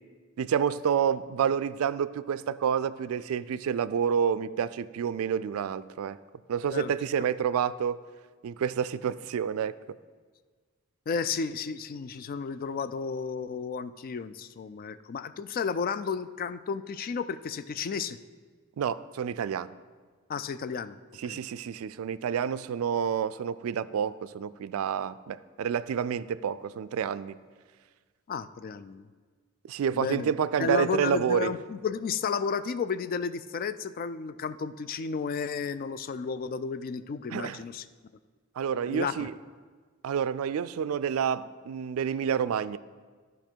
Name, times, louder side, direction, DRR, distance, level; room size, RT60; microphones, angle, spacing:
voice 1, 0.4-6.2 6.5-8.0 8.4-9.7 18.8-19.7 21.2-27.4 29.7-31.5 37.3-37.6 38.6-39.3 40.0-42.8, right 8 dB, 75° right, 17 dB, 0.3 m, -29 dB
voice 2, 11.1-18.2 20.3-21.0 21.3-21.4 28.3-29.1 29.9-30.3 30.6-37.8 38.9-39.3, left 5 dB, 45° left, 13 dB, 0.3 m, -32 dB
12.0 x 5.4 x 4.5 m, 1.5 s
head